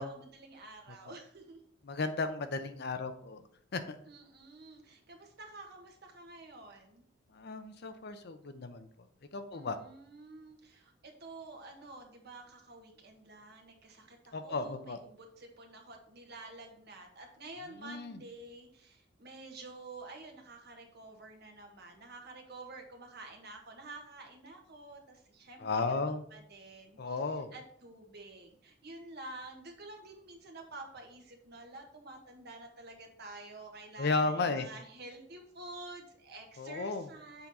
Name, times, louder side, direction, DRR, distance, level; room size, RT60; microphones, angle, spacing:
voice 1, 0.0-1.6 4.1-7.0 9.5-37.5, right 2 dB, 60° right, 3 dB, 1.4 m, -49 dB
voice 2, 1.9-3.4 3.7-4.0 7.3-8.9 9.3-9.8 14.3-15.0 17.8-18.2 25.6-26.2 27.0-27.5 34.0-34.7 36.6-37.1, left 3 dB, 60° left, 9 dB, 0.6 m, -34 dB
7.1 x 3.9 x 4.2 m, 0.62 s
head